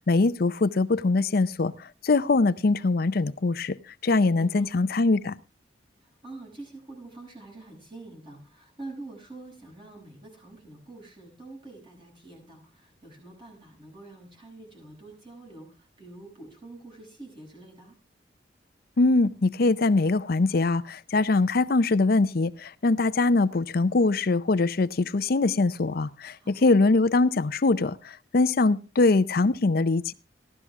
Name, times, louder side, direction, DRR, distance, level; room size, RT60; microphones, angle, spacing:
voice 1, 0.1-1.7 2.0-3.8 4.0-5.4 19.0-28.0 28.3-30.1, left 3 dB, 55° left, 0.6 m, -22 dB
voice 2, 4.3-4.7 6.0-17.9 26.4-26.7, right 2 dB, 30° right, 7.4 m, -46 dB
15.5 x 12.5 x 3.6 m
head